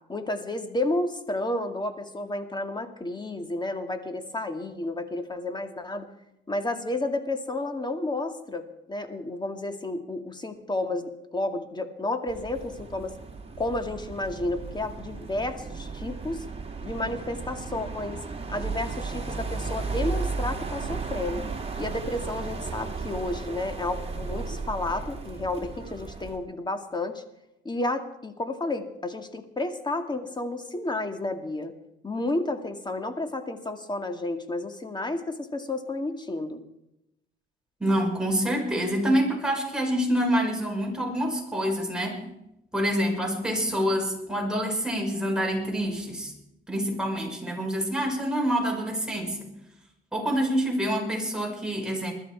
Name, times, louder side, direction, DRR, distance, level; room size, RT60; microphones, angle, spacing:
voice 1, 0.1-6.1 6.5-13.1 13.6-16.4 16.8-18.2 18.5-21.5 21.8-27.2 27.6-31.7 32.0-36.6, left 2 dB, 20° left, 7 dB, 2.3 m, -31 dB
sound 1, 12.3-26.4, right 4 dB, 30° right, 2.9 m, -35 dB
voice 2, 37.8-42.2 42.7-46.3 46.7-49.5 50.1-52.1, equal, 5° right, -1 dB, 5.9 m, -26 dB
21.0 x 13.0 x 4.8 m, 0.84 s
cardioid pair, 90°, 20 cm